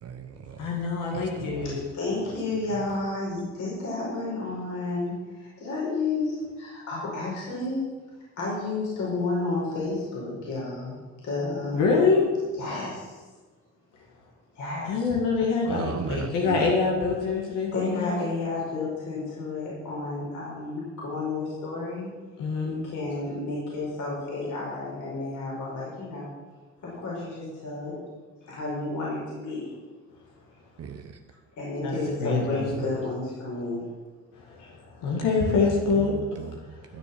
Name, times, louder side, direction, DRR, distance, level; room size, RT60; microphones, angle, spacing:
voice 1, 0.0-0.7 1.1-1.8 2.7-2.8 15.6-16.7 30.8-31.2 35.6-37.0, right 7 dB, 55° right, 7 dB, 1.0 m, -36 dB
voice 2, 0.6-1.8 7.4-7.5 11.7-12.3 14.8-18.2 22.4-22.8 31.8-31.9 32.2-32.7 34.4-36.4, left 4 dB, 90° left, -1 dB, 2.1 m, -25 dB
voice 3, 1.6-7.8 8.4-11.0 11.2-11.8 12.6-13.2 14.5-14.9 17.7-22.1 22.6-26.3 26.8-28.0 28.5-29.7 31.6-33.9 34.6-34.7, left 3 dB, 70° left, -6 dB, 4.9 m, -31 dB
13.0 x 6.8 x 7.1 m, 1.3 s
cardioid pair, 90°, 30 cm